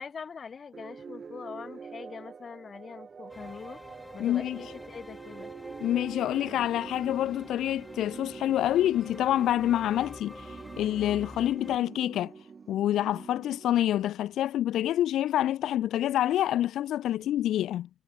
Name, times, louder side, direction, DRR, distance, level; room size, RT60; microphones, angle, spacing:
voice 1, 0.0-3.8 4.1-5.5 17.1-17.4, left 6 dB, 40° left, 5.7 m, -43 dB
sound 1, 0.7-14.5, right 5 dB, 40° right, 2.0 m, -46 dB
sound 2, 3.3-11.8, left 1 dB, 10° left, 2.3 m, -47 dB
voice 2, 4.2-4.6 5.8-12.3 12.7-17.9, left 12 dB, 80° left, 1.0 m, -27 dB
cardioid pair, 90°, 0 cm